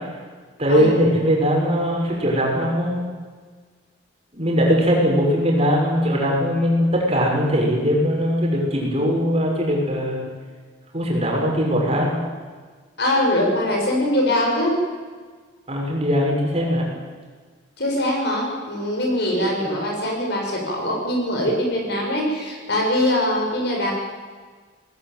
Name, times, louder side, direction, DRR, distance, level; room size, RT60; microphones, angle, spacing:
voice 1, 0.6-3.1 4.3-10.2 10.9-12.2 15.7-16.9, equal, 30° right, -1 dB, 6.1 m, -20 dB
voice 2, 13.0-14.8 17.8-23.9, left 1 dB, 55° left, 0 dB, 6.9 m, -22 dB
20.5 x 19.0 x 9.2 m, 1.5 s
head